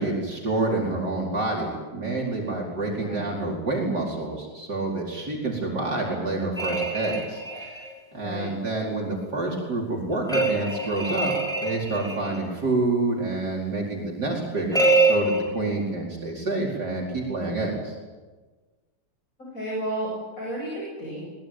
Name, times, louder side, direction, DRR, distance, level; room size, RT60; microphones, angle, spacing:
voice 1, 0.0-7.8 8.1-11.3 11.6-18.0, right 2 dB, 60° right, -2 dB, 5.2 m, -28 dB
voice 2, 2.8-3.3 8.2-8.5 19.4-21.2, right 1 dB, 45° left, -3 dB, 8.5 m, -32 dB
sound 1, 6.6-7.9 10.3-12.4 14.7-15.4, right 2 dB, ahead, 6.4 m, -24 dB
23.0 x 22.0 x 9.2 m, 1.3 s
omnidirectional pair, 2.0 m